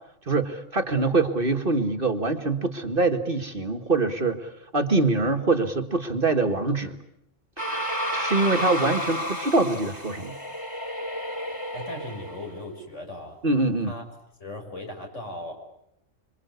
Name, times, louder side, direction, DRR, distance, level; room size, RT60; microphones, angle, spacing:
voice 1, 0.3-7.0 7.6-7.9 8.1-10.3 13.4-13.9, right 3 dB, 45° right, 7 dB, 2.1 m, -24 dB
sound 1, 7.6-12.6, equal, 15° left, 3.2 m, -31 dB
voice 2, 11.7-13.4 13.9-14.0 14.4-15.5, left 1 dB, 65° left, 2 dB, 7.1 m, -37 dB
26.5 x 25.5 x 8.3 m, 0.78 s
omnidirectional pair, 1.4 m